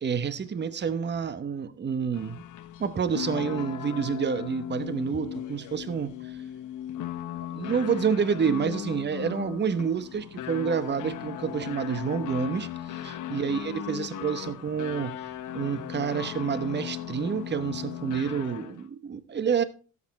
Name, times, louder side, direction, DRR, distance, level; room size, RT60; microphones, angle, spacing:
voice 1, 0.0-2.4 2.8-6.3 7.5-15.2 15.5-19.6, right 6 dB, 35° right, 1.0 m, -28 dB
sound 1, 2.1-18.9, left 11 dB, 85° left, 1.2 m, -37 dB
13.0 x 8.6 x 4.2 m
cardioid pair, 90°, 30 cm